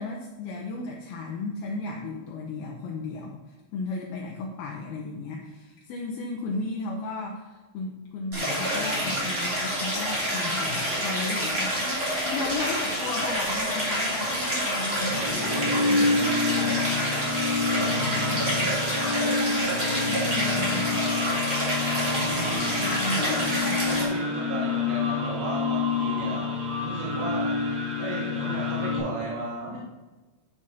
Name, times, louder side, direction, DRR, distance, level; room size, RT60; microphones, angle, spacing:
voice 1, 0.0-17.3 17.8-21.0 22.8-23.8, left 3 dB, 80° left, 0 dB, 2.3 m, -35 dB
Stream, 8.3-24.0, equal, 25° right, 1.4 m, -28 dB
sound 1, 14.8-29.0, left 3 dB, 60° right, 2.0 m, -28 dB
voice 2, 23.1-23.6 23.9-26.5 26.8-27.6 28.0-29.8, right 2 dB, 85° right, -6 dB, 3.8 m, -34 dB
10.5 x 5.0 x 4.1 m, 1.2 s
omnidirectional pair, 5.0 m